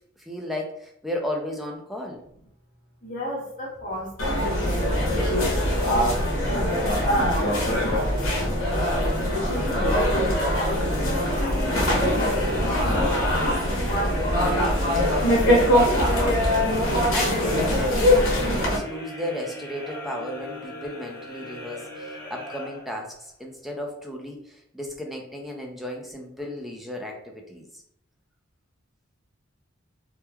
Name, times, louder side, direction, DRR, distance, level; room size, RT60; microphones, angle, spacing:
voice 1, 0.2-2.2 17.1-27.7, left 1 dB, ahead, 0 dB, 0.3 m, -34 dB
voice 2, 3.0-5.0 5.3-8.2 8.7-12.9 13.2-16.3, left 1 dB, 40° left, -6 dB, 0.9 m, -35 dB
sound 1, 4.2-18.8, equal, 70° left, 0.8 m, -22 dB
sound 2, 11.0-23.3, equal, 15° left, 1.1 m, -39 dB
3.0 x 2.2 x 2.2 m, 0.74 s
head